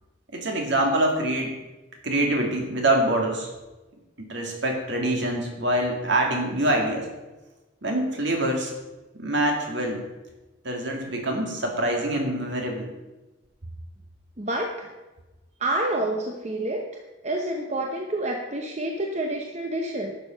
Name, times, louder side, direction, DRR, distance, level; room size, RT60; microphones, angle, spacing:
voice 1, 0.3-1.6 2.0-3.5 4.2-7.1 7.8-8.7 9.1-10.0 10.6-12.9, right 1 dB, 60° right, 1 dB, 2.3 m, -25 dB
voice 2, 14.4-14.9 15.6-16.8 17.2-20.1, right 1 dB, 35° right, 2 dB, 0.9 m, -28 dB
11.5 x 7.4 x 5.2 m, 1.1 s
head